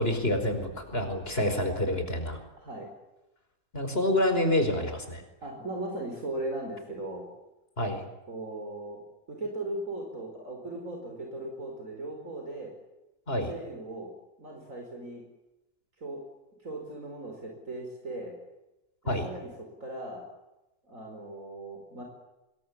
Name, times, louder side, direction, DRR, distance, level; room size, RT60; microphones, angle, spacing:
voice 1, 0.0-2.4 3.7-5.2 7.8-8.0 13.3-13.5 19.1-19.3, left 1 dB, 45° left, 7 dB, 5.3 m, -27 dB
voice 2, 2.6-2.9 5.4-7.3 8.3-9.0 9.3-12.7 13.5-14.1 14.4-15.2 16.0-16.2 16.6-18.3 19.0-20.2 20.9-22.0, right 2 dB, 75° right, 1 dB, 5.4 m, -38 dB
26.0 x 22.5 x 8.8 m, 0.97 s
omnidirectional pair, 1.4 m